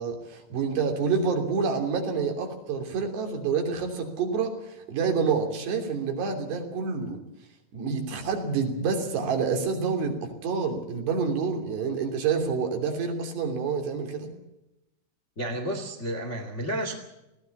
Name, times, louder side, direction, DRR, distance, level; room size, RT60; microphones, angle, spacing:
voice 1, 0.0-7.2 7.7-14.3, right 5 dB, 75° right, 4 dB, 5.1 m, -28 dB
voice 2, 15.4-16.9, right 1 dB, 25° left, 4 dB, 1.5 m, -31 dB
20.0 x 16.5 x 8.4 m, 0.93 s
omnidirectional pair, 5.0 m